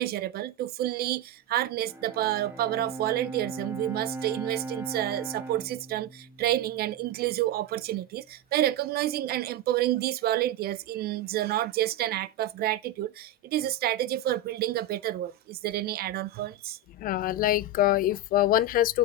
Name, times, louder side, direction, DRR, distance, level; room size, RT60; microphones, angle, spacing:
voice 1, 0.0-16.8, right 14 dB, 65° right, 0.5 m, -29 dB
Bowed string instrument, 1.8-7.3, right 2 dB, 15° right, 1.4 m, -39 dB
voice 2, 17.0-19.0, left 13 dB, 60° left, 0.4 m, -24 dB
13.0 x 5.9 x 2.5 m
cardioid pair, 110°, 17 cm